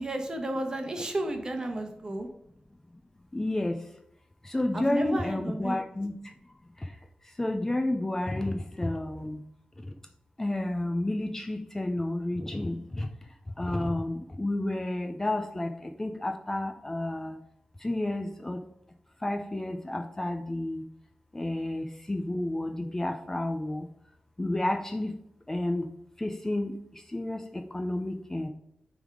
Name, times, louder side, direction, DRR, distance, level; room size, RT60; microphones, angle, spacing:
voice 1, 0.0-2.3 4.7-5.8, right 1 dB, 30° right, 4 dB, 1.3 m, -32 dB
voice 2, 3.3-3.9 4.4-6.3 6.8-7.0 7.2-9.4 9.9-10.0 10.4-13.1 13.6-17.4 17.8-18.6 19.2-20.8 21.3-23.9 24.4-25.2 25.5-25.9 26.2-28.5, left 1 dB, 15° left, 5 dB, 0.6 m, -31 dB
9.4 x 3.6 x 4.9 m, 0.77 s
wide cardioid pair, 125°, 3 cm